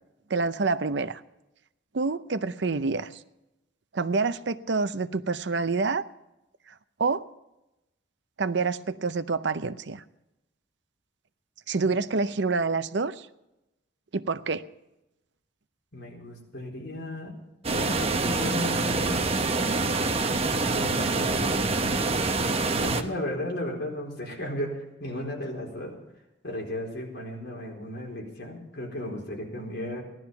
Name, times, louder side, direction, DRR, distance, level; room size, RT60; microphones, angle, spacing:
voice 1, 0.3-1.2 1.9-3.2 3.9-6.0 7.0-7.2 8.4-10.0 11.7-13.3 14.1-14.6, right 4 dB, 65° right, 13 dB, 0.6 m, -27 dB
voice 2, 15.9-17.3 17.7-19.3 20.2-22.0 22.8-26.0 26.4-30.0, left 1 dB, 60° left, -1 dB, 4.3 m, -35 dB
sound 1, 17.6-23.0, right 3 dB, 30° right, 0.9 m, -26 dB
17.0 x 12.0 x 5.8 m, 0.92 s
head